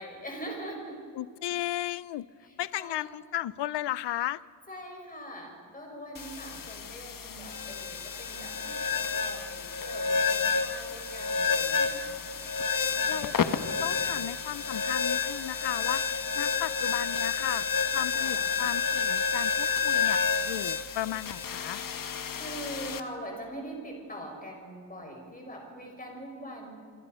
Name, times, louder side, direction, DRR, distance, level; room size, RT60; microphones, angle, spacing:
voice 1, 0.0-1.0 2.4-3.2 4.7-12.2 12.8-13.4 18.1-18.4 22.3-26.7, right 1 dB, 20° left, 1 dB, 6.5 m, -43 dB
voice 2, 1.2-2.3 2.6-4.4 13.1-13.3 13.8-17.6 17.9-20.2 20.4-21.8, left 14 dB, 70° left, 18 dB, 0.7 m, -35 dB
sound 1, 6.1-23.0, left 5 dB, 50° left, 1.3 m, -30 dB
27.0 x 24.5 x 5.6 m, 2.4 s
wide cardioid pair, 135°, 43 cm